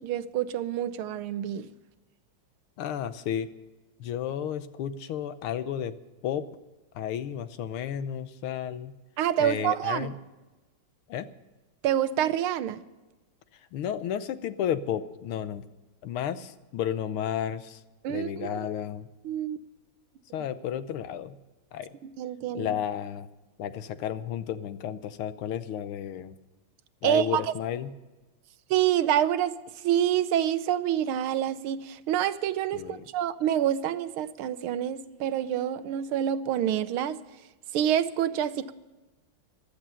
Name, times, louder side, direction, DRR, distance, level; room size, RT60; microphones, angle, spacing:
voice 1, 0.0-1.7 9.2-10.1 11.8-12.8 18.0-18.6 19.2-19.6 22.0-22.7 27.0-27.4 28.7-29.6 29.8-37.2 37.7-38.7, right 10 dB, 85° right, 1.6 m, -27 dB
voice 2, 2.8-3.5 4.0-5.9 6.2-6.4 7.0-8.9 9.4-10.1 11.1-11.3 13.7-15.6 16.0-17.8 18.1-19.1 20.3-21.4 21.7-21.9 22.5-23.3 23.6-26.4 27.0-27.9 32.7-33.0, left 9 dB, 85° left, 1.7 m, -32 dB
15.5 x 12.5 x 5.6 m
omnidirectional pair, 2.3 m